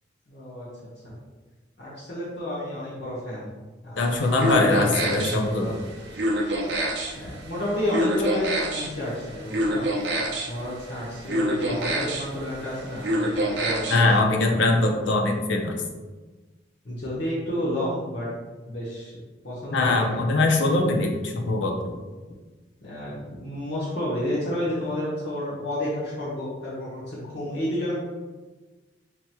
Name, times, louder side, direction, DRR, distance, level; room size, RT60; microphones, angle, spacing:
voice 1, 0.3-0.7 1.0-1.2 1.8-5.8 7.1-9.9 10.5-14.6 16.8-18.3 18.7-19.2 19.4-20.2 22.8-27.9, left 1 dB, 60° left, -8 dB, 1.0 m, -31 dB
voice 2, 4.0-5.7 13.9-15.8 19.7-21.9, left 2 dB, 85° left, 2 dB, 0.6 m, -22 dB
sound 1, 4.0-14.2, right 1 dB, 65° right, 0.6 m, -28 dB
5.9 x 2.9 x 2.2 m, 1.3 s
head